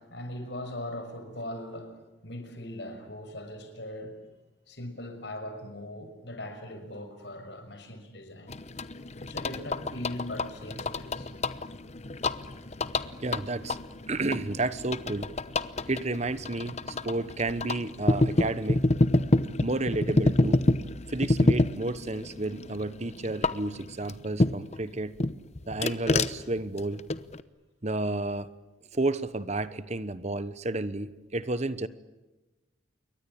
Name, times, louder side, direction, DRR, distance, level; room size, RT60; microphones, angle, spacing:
voice 1, 0.0-4.2 4.7-8.6 9.2-11.3 13.6-13.7, left 1 dB, 60° left, 8 dB, 6.0 m, -40 dB
sound 1, 8.5-24.8 25.2-27.4, left 2 dB, 35° left, 0.9 m, -28 dB
voice 2, 13.2-13.8 14.1-15.3 15.9-18.8 19.6-20.6 21.1-25.1 25.7-27.0 27.8-28.5 28.9-31.9, right 2 dB, 35° right, 14 dB, 1.1 m, -31 dB
28.5 x 23.5 x 8.8 m, 1.1 s
head